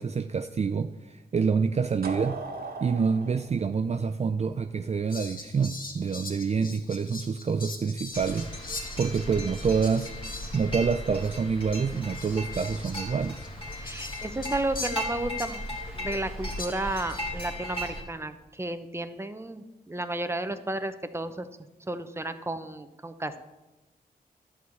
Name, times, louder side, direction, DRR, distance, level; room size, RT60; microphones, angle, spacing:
voice 1, 0.0-2.4 2.8-8.5 9.0-10.1 10.5-13.4, right 5 dB, 40° right, 9 dB, 0.4 m, -27 dB
sound 1, 2.0-4.9, right 3 dB, 60° right, 1.5 m, -38 dB
Fowl, 5.1-10.9 11.2-11.3 11.9-15.8 16.6-17.2, left 3 dB, 55° left, 1.5 m, -42 dB
sound 2, 8.1-18.0, left 1 dB, 30° left, 2.8 m, -36 dB
voice 2, 13.8-15.6 15.9-21.5 21.9-23.5, right 2 dB, 15° right, 9 dB, 0.8 m, -33 dB
11.5 x 4.8 x 8.4 m, 1.0 s
cardioid pair, 75°, 17 cm